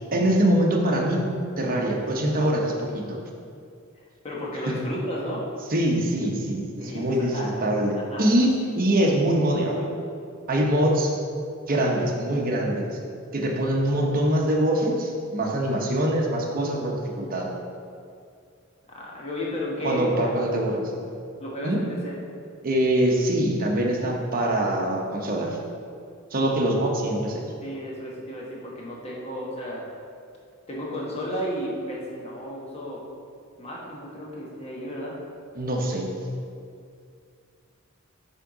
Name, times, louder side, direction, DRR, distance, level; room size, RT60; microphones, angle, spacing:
voice 1, 0.1-1.3 1.6-3.2 4.7-4.8 5.7-7.9 8.2-9.9 10.5-11.1 11.7-12.9 13.3-17.5 19.8-20.8 21.6-21.8 22.6-25.6 26.3-27.4 35.6-36.1, right 1 dB, 45° right, -1 dB, 0.9 m, -23 dB
voice 2, 4.2-5.5 6.8-7.1 7.3-7.5 8.1-8.3 18.9-20.2 21.4-22.1 27.6-29.9 30.7-33.0 33.6-35.2, equal, 30° left, -4 dB, 1.2 m, -33 dB
6.6 x 3.6 x 4.9 m, 2.3 s
head